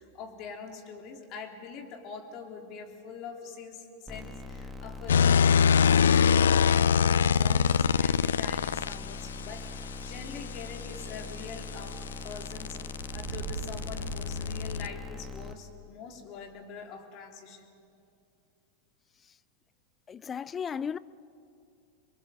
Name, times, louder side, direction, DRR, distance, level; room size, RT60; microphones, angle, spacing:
voice 1, 0.0-17.7, left 5 dB, 45° left, 3.8 m, -44 dB
sound 1, 4.1-15.5, left 3 dB, 5° right, 1.8 m, -42 dB
sound 2, 5.1-9.0 11.2-14.9, left 7 dB, 80° left, 0.5 m, -24 dB
sound 3, 13.1-15.4, right 7 dB, 70° right, 2.0 m, -41 dB
voice 2, 20.1-21.0, left 7 dB, 25° left, 0.5 m, -34 dB
27.0 x 22.5 x 7.3 m
hypercardioid pair, 100°, 0 cm